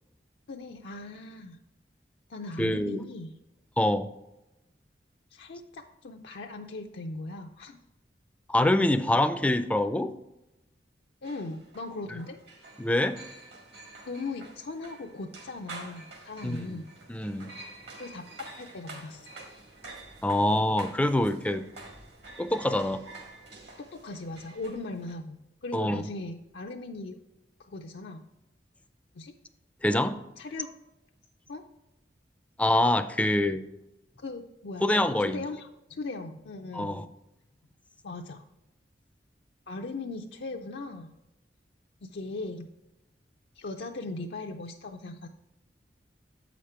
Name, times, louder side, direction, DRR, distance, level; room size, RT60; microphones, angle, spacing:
voice 1, 0.5-1.6 2.3-3.4 5.3-7.8 11.2-12.4 14.1-16.9 17.9-19.3 23.8-27.2 27.7-28.3 29.1-29.3 30.4-30.7 31.5-31.6 34.2-34.9 35.2-37.0 38.0-38.5 39.7-41.1 42.0-42.7 43.5-45.3, left 3 dB, 70° left, 3 dB, 0.5 m, -39 dB
voice 2, 2.6-3.0 3.8-4.1 8.5-10.1 12.8-13.2 16.4-16.8 17.1-17.5 20.2-21.6 22.4-23.0 25.7-26.0 29.8-30.2 32.6-33.6 34.8-35.4 36.7-37.1, left 1 dB, 10° left, 9 dB, 0.4 m, -25 dB
sound 1, 11.2-25.1, right 2 dB, 70° right, 1.8 m, -48 dB
7.9 x 5.1 x 4.4 m, 0.94 s
head